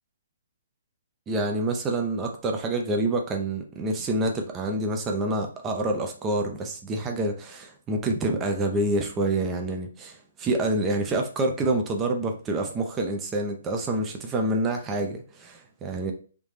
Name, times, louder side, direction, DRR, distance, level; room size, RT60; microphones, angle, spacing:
voice 1, 1.3-16.1, right 2 dB, 15° right, 3 dB, 0.5 m, -27 dB
3.3 x 2.7 x 3.2 m, 0.39 s
hypercardioid pair, 145°, 0 cm